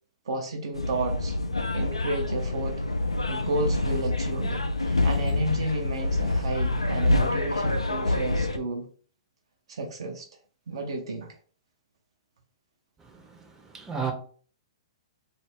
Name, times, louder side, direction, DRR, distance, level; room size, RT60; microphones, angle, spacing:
voice 1, 0.3-1.4 1.7-2.8 3.3-8.9 9.7-10.3 10.7-11.3, right 2 dB, 65° right, 0.5 m, -32 dB
sound 1, 0.7-8.6, left 2 dB, 90° left, 0.4 m, -26 dB
voice 2, 13.0-13.4 13.7-14.1, right 6 dB, 15° right, 0.6 m, -33 dB
2.3 x 2.0 x 3.2 m
figure-of-eight pair, 110°, 3 cm